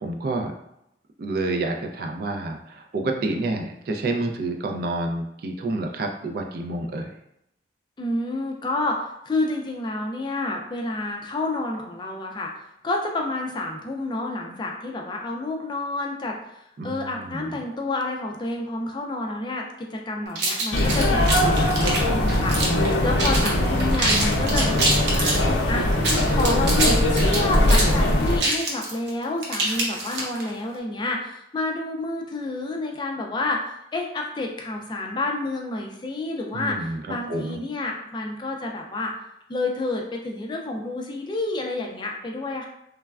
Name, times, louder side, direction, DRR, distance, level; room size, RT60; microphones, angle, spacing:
voice 1, 0.0-0.5 1.2-7.1 16.8-17.6 36.5-37.6, right 2 dB, 55° right, 2 dB, 0.3 m, -29 dB
voice 2, 8.0-12.5 12.8-25.9 26.3-39.1 39.5-42.7, left 2 dB, 25° left, 1 dB, 0.3 m, -29 dB
sound 1, 20.3-22.9 23.2-23.5 23.8-25.4 25.9-30.5, right 2 dB, 70° right, 0.7 m, -25 dB
sound 2, 20.7-28.4, left 1 dB, 80° left, 0.5 m, -21 dB
3.2 x 2.1 x 2.3 m, 0.82 s
head